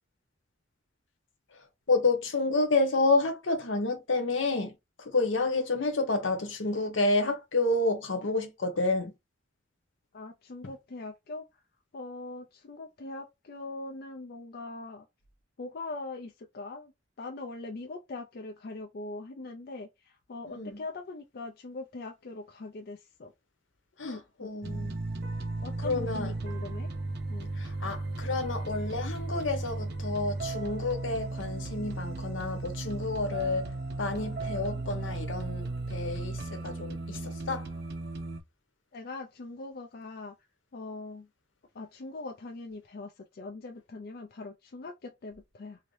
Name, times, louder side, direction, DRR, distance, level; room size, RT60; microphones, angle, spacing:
voice 1, 1.5-9.1 20.5-20.8 24.0-25.0 25.8-26.3 27.5-33.7 34.0-37.7, left 3 dB, 80° left, 0.9 m, -29 dB
voice 2, 10.1-11.5 11.9-15.1 15.6-16.9 17.2-23.3 24.0-24.5 25.6-26.9 27.3-27.5 38.9-40.3 40.7-41.3 41.7-45.8, left 2 dB, 50° left, 0.4 m, -41 dB
sound 1, 24.6-38.4, right 2 dB, 55° right, 0.6 m, -35 dB
2.8 x 2.6 x 3.1 m
head